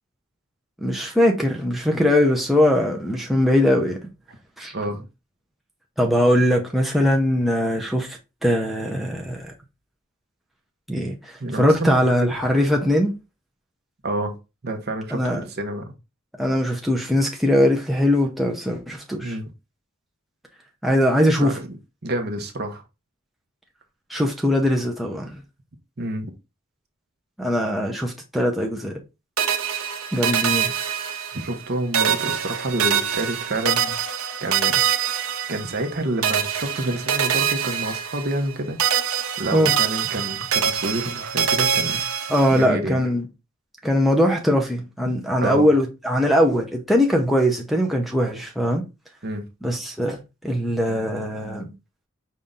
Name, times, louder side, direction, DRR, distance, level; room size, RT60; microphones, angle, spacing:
voice 1, 0.8-4.0 4.6-4.7 6.0-9.5 10.9-13.1 15.1-15.4 16.4-19.4 20.8-21.6 24.1-25.3 27.4-29.0 30.1-30.7 39.5-39.7 42.3-43.2 43.8-48.8 49.6-50.2 50.4-51.7, left 1 dB, ahead, 0.6 m, -21 dB
voice 2, 4.7-5.1 11.4-12.3 14.0-14.4 14.6-15.9 19.2-19.4 21.4-21.8 22.0-22.8 26.0-26.3 31.3-34.0 34.4-34.8 35.5-38.8 39.4-42.1 42.5-43.0 45.0-45.1 45.4-45.7 49.2-49.5, right 1 dB, 50° right, 0.9 m, -28 dB
sound 1, 29.4-31.7 31.9-35.9 36.2-38.5 38.8-42.7, right 8 dB, 85° right, 0.8 m, -24 dB
5.3 x 2.7 x 3.7 m
head